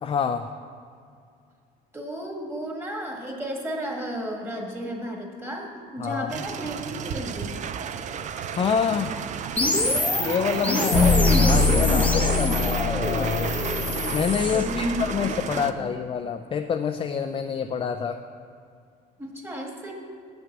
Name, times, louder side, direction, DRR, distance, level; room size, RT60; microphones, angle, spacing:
voice 1, 0.0-0.5 6.0-6.4 8.5-9.2 10.2-11.0 11.2-13.6 14.1-18.2, left 6 dB, 30° left, 6 dB, 0.4 m, -27 dB
voice 2, 1.9-7.5 10.8-11.9 14.5-15.2 15.5-15.9 19.2-19.9, right 1 dB, 15° right, 0 dB, 1.8 m, -33 dB
sound 1, 6.3-15.7, right 7 dB, 45° right, 0.5 m, -32 dB
sound 2, 9.6-14.7, left 2 dB, 10° left, 0.8 m, -26 dB
sound 3, 10.9-15.1, left 4 dB, 80° left, 1.2 m, -23 dB
8.3 x 6.0 x 7.5 m, 2.3 s
cardioid pair, 110°, 17 cm